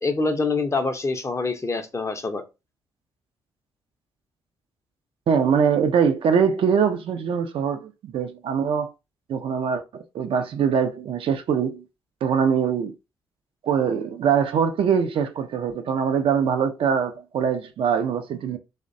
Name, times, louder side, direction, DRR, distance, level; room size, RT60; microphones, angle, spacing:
voice 1, 0.0-2.4, left 3 dB, 25° left, 0.5 m, -25 dB
voice 2, 5.3-8.9 9.3-11.8 12.2-12.9 13.6-18.6, right 7 dB, 55° right, 0.4 m, -23 dB
2.5 x 2.1 x 2.5 m
hypercardioid pair, 45°, 11 cm